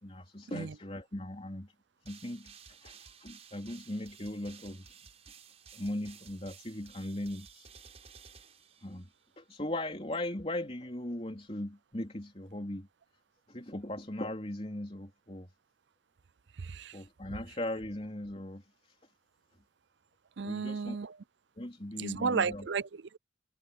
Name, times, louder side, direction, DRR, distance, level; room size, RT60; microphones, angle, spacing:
voice 1, 0.0-1.7 2.0-2.5 2.8-4.9 5.7-7.7 8.8-9.1 9.4-12.9 13.5-15.5 16.9-19.0 20.4-21.0 21.6-22.6, left 1 dB, 30° left, 3.7 m, -39 dB
sound 1, 2.0-9.3, right 6 dB, 35° right, 5.9 m, -55 dB
voice 2, 16.6-17.0 20.4-21.2 22.0-23.2, right 5 dB, 65° right, 0.5 m, -33 dB
head